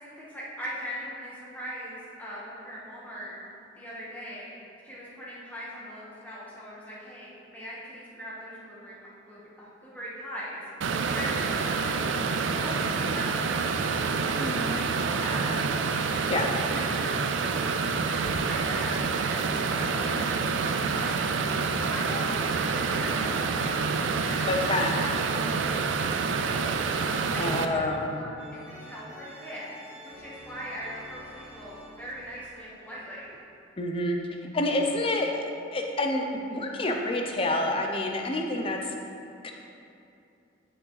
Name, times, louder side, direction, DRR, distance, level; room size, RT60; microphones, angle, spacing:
voice 1, 0.0-3.3 3.7-4.5 4.8-9.0 9.3-12.1 12.4-13.6 14.0-15.6 16.7-17.1 18.1-20.4 20.9-21.1 21.9-26.8 27.3-29.7 30.0-33.4, equal, 10° left, -8 dB, 1.5 m, -40 dB
sound 1, 10.8-27.7, right 5 dB, 85° right, 0.4 m, -27 dB
voice 2, 14.4-14.8 16.3-16.5 24.4-25.0 27.4-28.1 33.8-34.2 34.5-35.4 35.7-38.8 39.4-39.5, left 1 dB, 30° left, 2 dB, 0.6 m, -28 dB
sound 2, 28.4-33.4, equal, 10° right, 1.6 m, -49 dB
9.3 x 5.8 x 3.2 m, 2.6 s
head